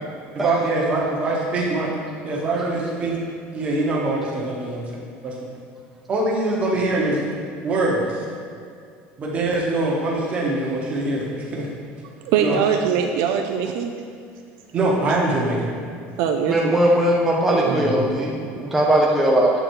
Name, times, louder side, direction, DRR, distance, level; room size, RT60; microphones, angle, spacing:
voice 1, 0.3-1.9 2.2-3.1 3.5-4.8 5.2-5.5 6.1-7.3 7.6-8.2 9.2-11.7 12.3-12.6 14.7-15.7 17.7-18.0, right 2 dB, 25° right, -3 dB, 1.0 m, -23 dB
voice 2, 12.2-13.9 16.2-16.8 17.5-17.7, right 7 dB, 60° right, 4 dB, 0.4 m, -22 dB
voice 3, 16.5-19.5, right 1 dB, 5° right, -3 dB, 0.4 m, -19 dB
7.9 x 3.8 x 4.5 m, 2.3 s
cardioid pair, 175°, 5 cm